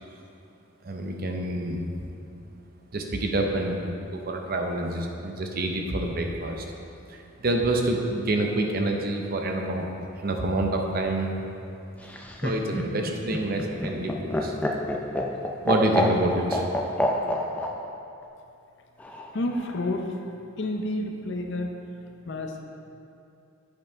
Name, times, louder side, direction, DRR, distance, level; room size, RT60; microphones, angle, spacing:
voice 1, 0.8-1.9 2.9-6.7 7.1-9.9 10.2-11.3 12.4-14.5 15.6-16.7, right 1 dB, 45° right, 2 dB, 0.7 m, -27 dB
Laughter, 12.0-17.7 19.0-19.6, left 1 dB, 5° left, 0.4 m, -27 dB
voice 2, 19.3-20.1 20.6-21.7 22.3-22.6, left 1 dB, 55° left, 3 dB, 0.6 m, -29 dB
8.1 x 5.4 x 4.5 m, 2.7 s
head